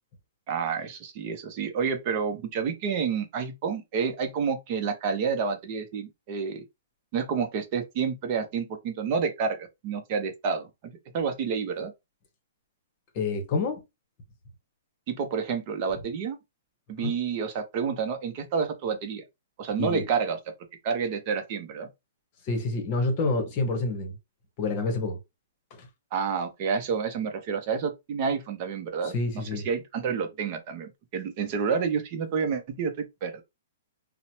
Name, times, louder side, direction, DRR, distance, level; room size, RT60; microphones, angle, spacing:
voice 1, 0.5-6.6 7.1-11.9 15.1-16.4 16.9-19.2 19.6-20.4 20.8-21.9 26.1-33.4, right 6 dB, 35° right, 0.6 m, -29 dB
voice 2, 13.1-13.8 17.0-17.1 19.8-20.1 22.5-24.2 24.6-25.2 25.7-25.9 29.0-29.7, left 3 dB, 35° left, 0.9 m, -28 dB
2.9 x 2.0 x 2.8 m
hypercardioid pair, 155°, 0 cm